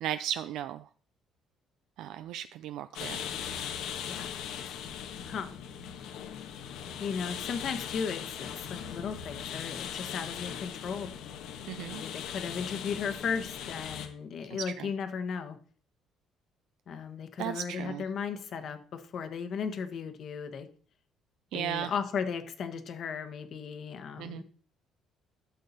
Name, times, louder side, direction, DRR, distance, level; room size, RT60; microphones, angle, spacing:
voice 1, 0.0-0.8 2.0-3.3 11.7-12.0 14.8-14.9 17.4-18.0 21.5-21.9 24.2-24.4, right 11 dB, 75° right, 12 dB, 0.4 m, -35 dB
sound 1, 2.9-14.1, left 8 dB, 80° left, 1.3 m, -39 dB
voice 2, 5.2-5.5 7.0-11.1 11.9-15.6 16.9-20.7 21.5-24.4, left 6 dB, 50° left, 9 dB, 1.2 m, -36 dB
11.5 x 6.6 x 4.2 m, 0.43 s
cardioid pair, 125°, 0 cm